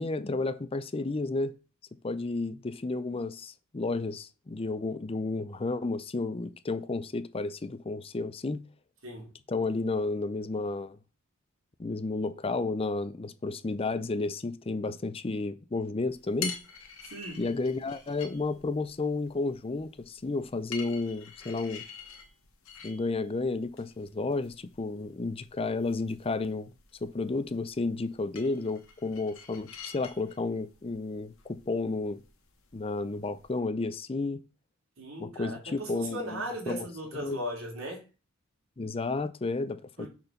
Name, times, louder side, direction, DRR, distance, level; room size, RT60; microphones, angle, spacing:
voice 1, 0.0-1.5 2.0-8.6 9.5-11.0 11.8-16.6 17.4-21.8 22.8-26.7 27.0-32.2 32.7-34.4 35.2-36.9 37.2-37.4 38.8-40.1, left 3 dB, 30° left, 0.5 m, -32 dB
sound 1, 16.1-33.6, left 6 dB, 90° left, 1.7 m, -47 dB
voice 2, 17.0-17.5 35.0-38.0 40.0-40.1, right 1 dB, 80° right, 3.1 m, -38 dB
6.6 x 4.4 x 5.7 m
head